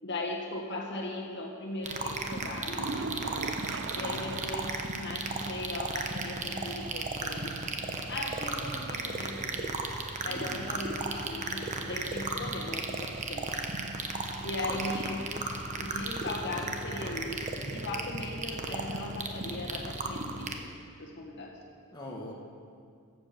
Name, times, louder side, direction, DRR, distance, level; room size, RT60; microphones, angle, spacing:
voice 1, 0.0-3.4 3.9-7.6 8.1-9.7 10.2-13.5 14.4-15.2 15.8-21.6, left 2 dB, 55° left, -1 dB, 1.6 m, -38 dB
sound 1, 1.8-20.6, right 3 dB, 35° right, 0.9 m, -35 dB
sound 2, 2.7-4.9 5.3-5.4 5.8-5.9 9.7-9.8, right 4 dB, 55° right, 0.6 m, -39 dB
voice 2, 3.9-4.3 10.2-10.6 14.7-14.9 21.9-22.3, left 1 dB, 20° left, -3 dB, 1.5 m, -42 dB
14.0 x 7.8 x 6.0 m, 2.4 s
head